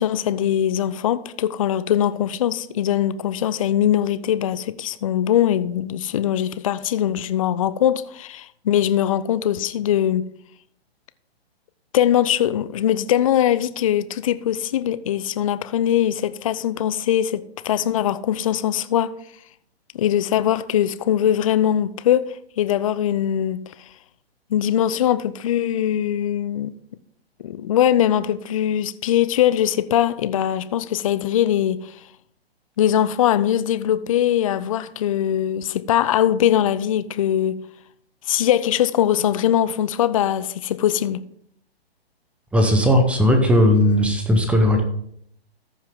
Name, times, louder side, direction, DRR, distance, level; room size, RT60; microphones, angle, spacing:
voice 1, 0.0-10.2 11.9-19.2 19.9-23.7 24.5-26.8 27.4-32.0 32.8-37.6 38.3-41.2, left 10 dB, 35° left, 0.4 m, -21 dB
voice 2, 42.5-44.8, left 1 dB, 5° right, 0.7 m, -17 dB
14.0 x 5.6 x 3.6 m
hypercardioid pair, 130°, 32 cm